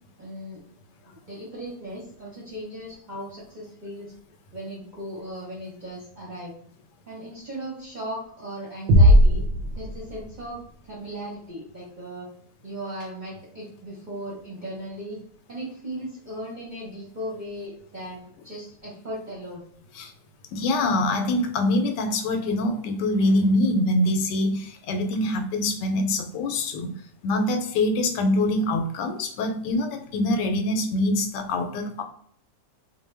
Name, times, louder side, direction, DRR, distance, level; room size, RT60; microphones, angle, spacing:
voice 1, 0.2-0.6 1.1-4.1 4.5-6.5 7.1-9.4 9.7-10.6 10.9-12.3 12.6-15.2 15.5-19.6, right 1 dB, 40° right, -5 dB, 0.7 m, -37 dB
sound 1, 8.9-10.6, equal, 85° right, 1.2 m, -17 dB
voice 2, 20.5-27.0 27.2-32.0, left 1 dB, 85° left, 6 dB, 1.2 m, -24 dB
2.7 x 2.2 x 3.2 m, 0.62 s
omnidirectional pair, 1.8 m